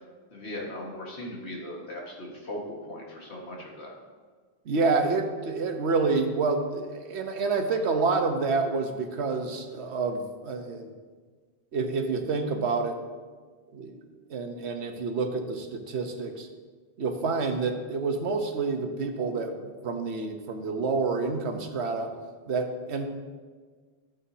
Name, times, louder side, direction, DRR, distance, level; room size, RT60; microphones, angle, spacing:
voice 1, 0.3-3.9, left 1 dB, 85° left, -2 dB, 2.0 m, -38 dB
voice 2, 4.6-10.9 11.7-13.0 13.7-14.0 14.3-16.5 17.0-22.1 22.5-23.1, right 4 dB, 90° right, 6 dB, 1.2 m, -28 dB
12.5 x 7.8 x 2.8 m, 1.5 s
omnidirectional pair, 1.1 m